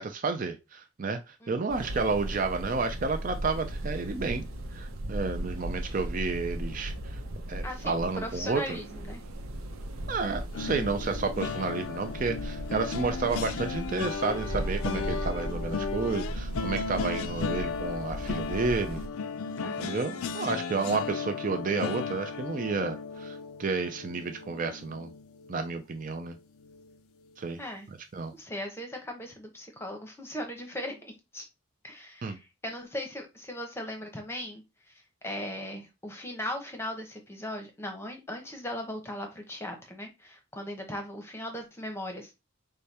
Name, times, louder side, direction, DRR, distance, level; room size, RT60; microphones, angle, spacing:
voice 1, 0.0-4.5 4.7-7.2 7.5-8.8 10.1-19.0 19.6-25.1 25.5-26.4 27.4-27.6 27.9-28.3 32.2-32.4, right 4 dB, 40° right, 0.4 m, -31 dB
voice 2, 1.4-1.7 7.6-9.2 19.6-20.0 27.6-27.9 28.3-31.4 31.8-42.3, left 1 dB, 10° left, 0.8 m, -38 dB
sound 1, 1.7-19.1, right 1 dB, 90° right, 0.8 m, -37 dB
sound 2, 10.5-25.7 26.1-26.3 26.6-26.8, left 5 dB, 85° left, 0.4 m, -35 dB
5.0 x 2.2 x 4.2 m
head